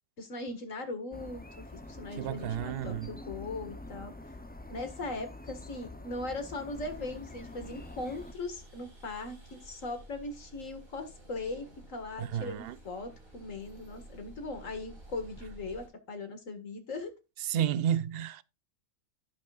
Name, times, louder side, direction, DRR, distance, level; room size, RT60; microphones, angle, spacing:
voice 1, 0.2-4.1 4.7-17.1, left 2 dB, 65° left, 2.2 m, -39 dB
sound 1, 1.1-8.3, left 1 dB, 15° left, 0.4 m, -46 dB
voice 2, 2.2-3.1 12.2-12.8 17.5-18.4, right 10 dB, 60° right, 0.7 m, -31 dB
sound 2, 6.7-15.9, right 1 dB, 75° right, 4.7 m, -52 dB
16.0 x 5.9 x 2.4 m
omnidirectional pair, 1.5 m